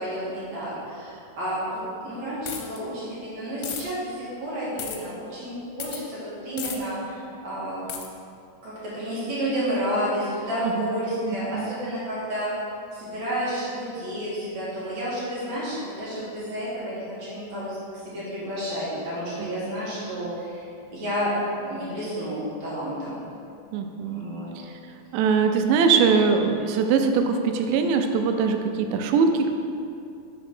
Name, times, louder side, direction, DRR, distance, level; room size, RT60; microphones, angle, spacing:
voice 1, 0.0-7.8 8.6-12.5 12.9-17.8 18.0-20.7 20.9-21.4 21.6-23.2 24.1-24.5, equal, 55° right, -9 dB, 2.2 m, -31 dB
sound 1, 2.5-2.8 3.6-3.8 4.8-5.0 5.8-6.0 6.6-6.8 7.9-8.1, left 8 dB, 90° left, 2.9 m, -33 dB
voice 2, 11.2-11.7 19.4-19.8 23.7-24.3 25.1-29.5, right 5 dB, 90° right, 5 dB, 2.9 m, -22 dB
6.3 x 4.4 x 5.9 m, 2.5 s
omnidirectional pair, 5.2 m